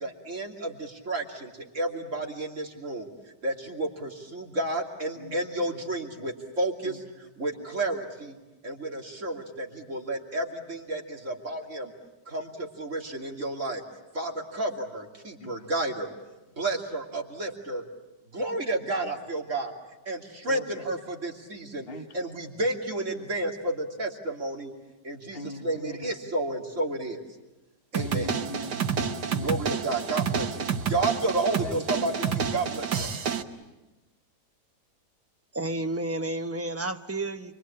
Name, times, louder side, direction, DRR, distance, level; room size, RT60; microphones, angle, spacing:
voice 1, 0.0-3.1 3.4-7.0 7.4-8.4 8.6-11.9 12.3-13.8 14.1-16.1 16.6-17.8 18.3-19.7 20.0-21.9 22.1-24.7 25.0-27.2 27.9-28.3 29.4-30.6 30.9-33.1, right 2 dB, 45° right, 0 dB, 3.2 m, -31 dB
voice 2, 15.4-15.7 20.5-20.9 21.9-22.3 25.3-26.2 28.0-29.8 30.5-30.9 31.6-32.2, left 2 dB, 40° left, 6 dB, 1.3 m, -41 dB
sound 1, 27.9-33.4, right 7 dB, 80° right, 1.9 m, -29 dB
voice 3, 35.5-37.5, right 2 dB, 15° right, 6 dB, 0.5 m, -31 dB
29.5 x 23.0 x 8.7 m, 1.1 s
omnidirectional pair, 1.8 m